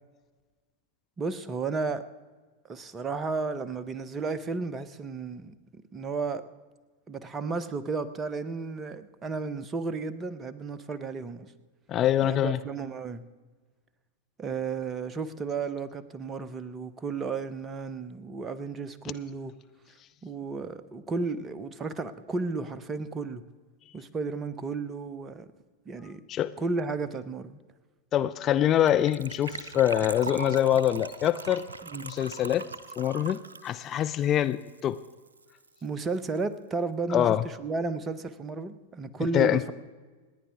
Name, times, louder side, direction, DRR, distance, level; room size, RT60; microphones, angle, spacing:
voice 1, 1.2-2.0 2.7-6.4 7.1-11.5 12.2-13.2 14.4-19.5 20.2-23.4 23.9-25.5 25.9-26.2 26.6-27.6 31.8-32.1 35.8-39.7, right 4 dB, 20° right, 13 dB, 0.9 m, -33 dB
voice 2, 11.9-12.6 26.3-26.5 28.1-31.6 32.0-32.6 33.0-35.0 37.1-37.4 39.3-39.6, left 11 dB, 30° left, 10 dB, 0.5 m, -24 dB
Gurgling / Trickle dribble / Fill (with liquid), 28.9-35.1 35.4-35.5 35.6-35.9 36.2-36.3, right 4 dB, 70° right, 0.6 m, -40 dB
28.0 x 10.0 x 3.6 m, 1.3 s
figure-of-eight pair, 90°, 0 cm